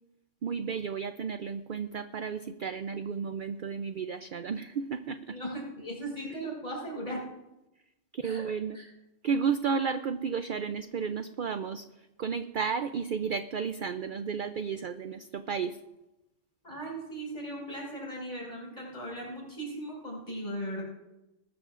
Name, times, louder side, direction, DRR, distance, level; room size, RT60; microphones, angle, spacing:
voice 1, 0.4-5.4 8.1-8.8 9.2-15.8, right 6 dB, 55° right, 10 dB, 0.6 m, -33 dB
voice 2, 5.3-7.2 8.2-8.4 8.7-8.9 16.6-20.8, right 1 dB, 40° left, -3 dB, 5.5 m, -38 dB
20.0 x 13.0 x 2.5 m, 0.97 s
omnidirectional pair, 1.3 m